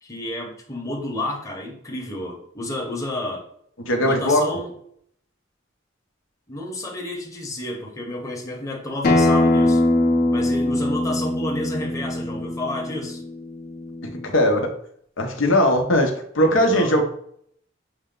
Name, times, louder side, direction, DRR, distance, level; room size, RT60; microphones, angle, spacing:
voice 1, 0.0-3.4 4.0-4.7 6.5-9.8 10.3-13.2 16.7-17.0, left 1 dB, 15° left, 0 dB, 0.9 m, -30 dB
voice 2, 3.8-4.5 14.2-14.7 15.2-17.0, left 1 dB, 90° left, 3 dB, 0.8 m, -19 dB
Acoustic guitar, 9.0-14.2, left 1 dB, 55° left, 0.8 m, -22 dB
6.4 x 2.1 x 3.7 m, 0.66 s
head